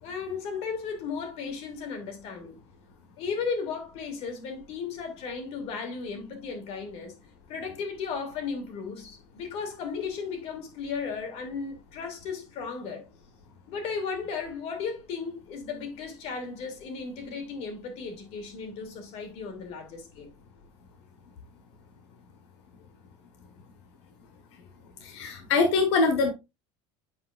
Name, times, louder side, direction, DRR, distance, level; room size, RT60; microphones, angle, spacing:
voice 1, 0.0-2.6 3.2-7.1 7.5-13.1 13.7-20.3, left 5 dB, 45° left, 2.3 m, -35 dB
voice 2, 25.0-26.3, left 4 dB, 85° left, 1.3 m, -23 dB
8.7 x 5.2 x 2.5 m
cardioid pair, 160°, 14 cm